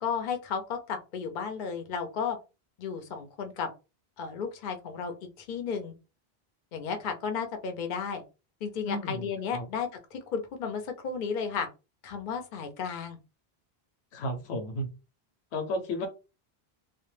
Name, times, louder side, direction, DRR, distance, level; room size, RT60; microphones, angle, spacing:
voice 1, 0.0-2.4 2.8-3.7 4.2-5.9 6.7-8.2 8.6-11.7 12.0-13.2, left 6 dB, 60° left, 0.7 m, -33 dB
voice 2, 8.9-9.7 14.1-14.9 15.5-16.1, left 1 dB, 85° left, 0.9 m, -33 dB
2.2 x 2.1 x 3.0 m
omnidirectional pair, 1.1 m